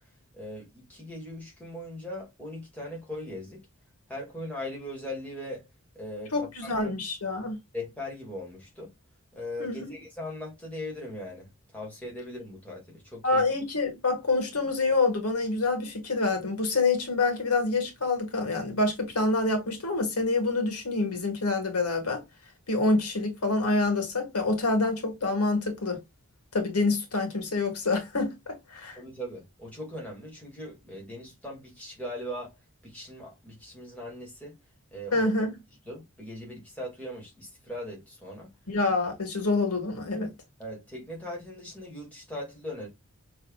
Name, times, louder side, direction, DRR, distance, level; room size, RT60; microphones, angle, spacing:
voice 1, 0.3-3.7 4.1-5.7 5.9-6.9 7.7-8.9 9.3-13.4 28.9-32.5 32.8-34.6 34.9-35.3 35.9-38.5 40.6-42.9, left 1 dB, 5° left, 1.9 m, -39 dB
voice 2, 6.3-7.6 9.6-9.9 13.2-22.2 22.7-26.0 26.5-29.0 35.1-35.5 38.7-40.3, left 3 dB, 90° left, 1.7 m, -27 dB
6.2 x 3.3 x 2.3 m
head